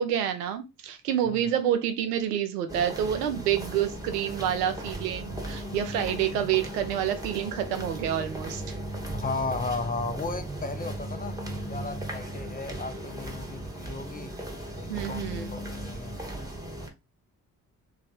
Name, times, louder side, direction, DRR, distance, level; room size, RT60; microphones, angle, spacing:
voice 1, 0.0-8.6 14.9-15.5, right 10 dB, 80° right, 0.6 m, -28 dB
sound 1, 2.7-16.9, right 1 dB, 10° right, 1.2 m, -37 dB
voice 2, 9.1-11.4 11.7-14.3 14.8-16.1, left 4 dB, 20° left, 0.6 m, -35 dB
3.2 x 2.7 x 4.0 m
figure-of-eight pair, 40°, 46 cm